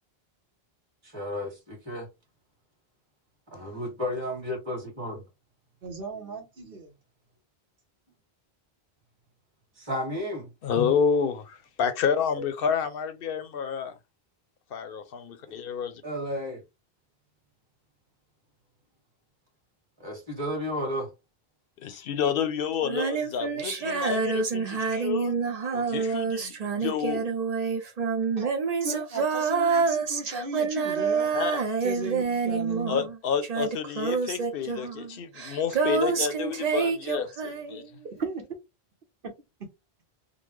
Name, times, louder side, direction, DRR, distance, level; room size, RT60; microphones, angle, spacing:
voice 1, 1.0-2.1 3.5-5.2 9.8-10.5 12.4-12.5 16.0-16.6 20.0-21.1, left 1 dB, 25° right, 1.7 m, -33 dB
voice 2, 5.8-6.9 28.4-28.5 28.8-31.3 31.8-33.0 38.2-38.5 39.2-39.3, right 3 dB, 60° right, 1.1 m, -36 dB
voice 3, 10.6-13.9 14.7-16.0 21.8-25.4 25.7-27.3 31.3-31.6 32.9-37.8, left 7 dB, 65° left, 0.8 m, -29 dB
Female singing, 22.8-33.2 33.4-37.9, right 5 dB, 45° right, 0.7 m, -27 dB
3.7 x 2.1 x 3.0 m
omnidirectional pair, 1.1 m